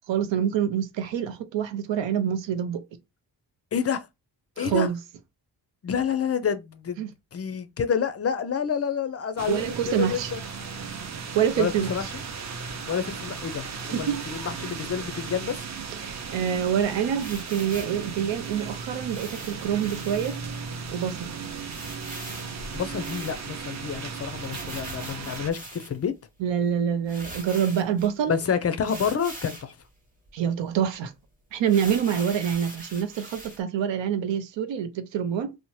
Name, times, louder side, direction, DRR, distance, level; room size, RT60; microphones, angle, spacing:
voice 1, 0.1-2.8 4.6-5.0 7.0-7.1 9.5-10.3 11.3-11.9 13.9-14.2 16.0-20.4 20.9-21.3 26.4-28.4 30.3-31.1 31.5-35.6, right 8 dB, 80° right, 0.6 m, -26 dB
voice 2, 3.7-4.1 4.6-4.9 5.8-10.4 11.6-12.1 12.9-15.6 22.7-26.1 28.3-29.8, left 7 dB, 35° left, 0.4 m, -28 dB
sound 1, 9.4-25.5, right 5 dB, 40° right, 0.6 m, -36 dB
sound 2, 17.2-18.0 19.0-20.4 20.8-20.9 21.1-21.2 21.7-23.7 24.4-26.1 26.7-26.8 27.1-28.1 28.8-29.7 30.2-30.3 30.7-30.8 31.6-33.6, right 1 dB, 20° right, 1.0 m, -42 dB
2.8 x 2.1 x 3.0 m
cardioid pair, 80°, 43 cm